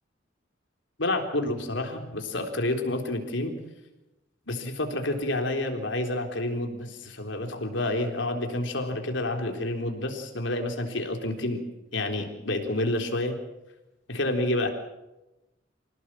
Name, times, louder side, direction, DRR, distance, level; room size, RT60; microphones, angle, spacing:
voice 1, 1.0-3.5 4.5-11.6 11.9-13.4 14.1-14.7, left 1 dB, 75° left, 4 dB, 3.8 m, -29 dB
26.0 x 18.0 x 7.6 m, 0.96 s
head